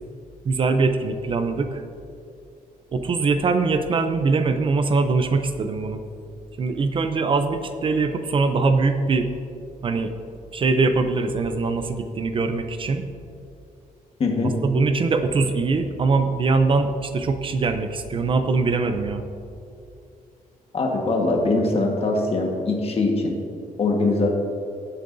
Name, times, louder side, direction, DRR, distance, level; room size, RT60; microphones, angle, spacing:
voice 1, 0.4-1.8 2.9-6.0 6.6-9.3 9.8-10.1 10.5-13.0 14.4-19.2, right 4 dB, 35° right, 8 dB, 0.5 m, -22 dB
voice 2, 14.2-14.5 20.7-23.4 23.8-24.3, left 2 dB, 45° left, 1 dB, 1.4 m, -22 dB
17.0 x 8.4 x 2.6 m, 2.5 s
wide cardioid pair, 175°, 15 cm